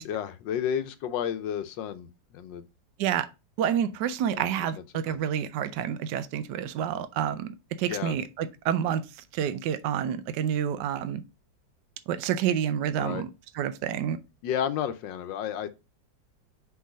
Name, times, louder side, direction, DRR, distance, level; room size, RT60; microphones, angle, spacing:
voice 1, 0.0-2.1 2.3-2.6 4.3-4.5 5.1-5.2 7.9-8.2 13.0-13.2 14.4-15.7, left 9 dB, 85° left, 1.4 m, -31 dB
voice 2, 3.6-9.0 9.3-11.2 12.1-13.3 13.6-14.2, right 9 dB, 75° right, 1.2 m, -28 dB
4.7 x 4.6 x 5.0 m
omnidirectional pair, 2.0 m